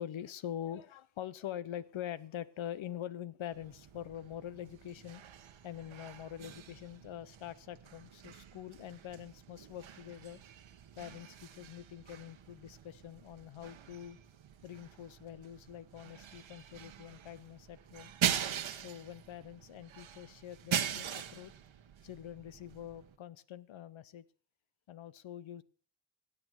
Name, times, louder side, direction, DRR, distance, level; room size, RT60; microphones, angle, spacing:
voice 1, 0.0-5.2 5.6-10.4 11.0-14.2 14.6-18.1 18.7-21.5 22.0-24.3 24.9-25.6, left 10 dB, 90° left, 17 dB, 0.8 m, -45 dB
sound 1, 3.5-23.2, right 9 dB, 90° right, 1.2 m, -42 dB
16.0 x 7.7 x 6.1 m, 0.43 s
cardioid pair, 55°, 46 cm